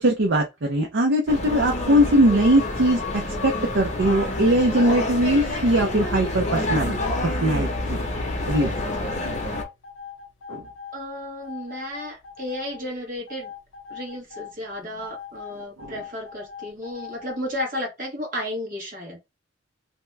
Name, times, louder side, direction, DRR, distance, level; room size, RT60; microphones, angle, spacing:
voice 1, 0.0-7.0 7.2-8.0 8.5-8.7 10.5-10.6 15.8-16.0, right 1 dB, 60° right, 0.5 m, -21 dB
sound 1, 1.3-9.6, left 1 dB, 35° left, 0.7 m, -28 dB
sound 2, 6.5-7.1 7.5-7.9 8.3-11.0 11.4-12.8 13.3-14.5 15.0-17.4, left 7 dB, 75° left, 0.9 m, -40 dB
voice 2, 10.9-13.5 13.9-19.2, left 1 dB, 40° right, 1.2 m, -33 dB
2.8 x 2.2 x 3.2 m
head